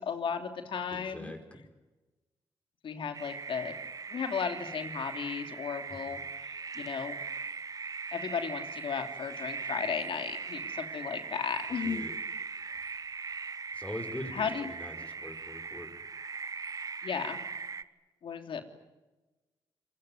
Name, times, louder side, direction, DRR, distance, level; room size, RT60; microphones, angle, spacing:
voice 1, 0.0-1.3 2.8-3.7 4.1-7.2 8.1-12.0 14.3-14.7 17.0-17.4 18.2-18.6, left 6 dB, 65° left, 6 dB, 3.2 m, -35 dB
voice 2, 0.9-1.6 5.9-6.2 11.8-12.2 13.7-15.9, left 1 dB, 15° left, 6 dB, 5.1 m, -43 dB
sound 1, 3.1-17.8, right 5 dB, 40° right, 1.1 m, -40 dB
27.5 x 21.0 x 9.5 m, 1.1 s
cardioid pair, 65°, 9 cm